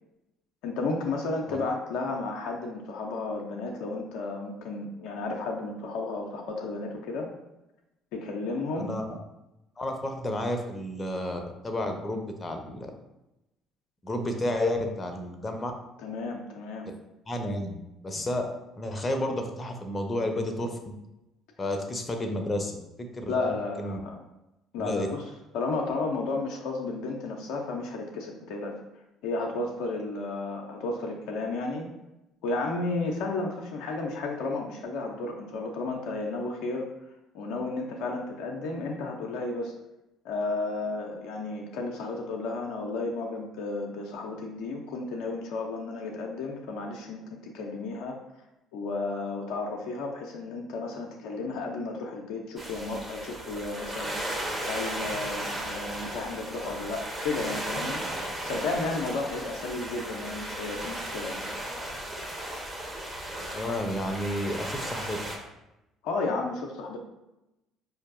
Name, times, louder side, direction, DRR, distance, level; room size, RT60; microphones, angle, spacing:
voice 1, 0.6-7.3 8.1-8.9 16.0-16.9 23.3-24.2 24.7-25.2 25.5-28.8 29.2-31.9 32.4-36.9 37.3-39.7 40.2-48.2 48.7-54.3 54.6-61.5 66.0-67.0, left 3 dB, 70° left, 1 dB, 0.4 m, -33 dB
voice 2, 9.8-12.9 14.0-15.7 17.3-17.7 18.0-18.4 18.8-20.9 21.6-22.7 23.0-23.4 23.8-24.0 24.8-25.1 63.5-65.2, left 1 dB, 25° left, 4 dB, 0.6 m, -31 dB
sound 1, 52.6-65.4, right 1 dB, 25° right, 1.0 m, -35 dB
4.4 x 2.7 x 2.5 m, 0.92 s
hypercardioid pair, 55°, 0 cm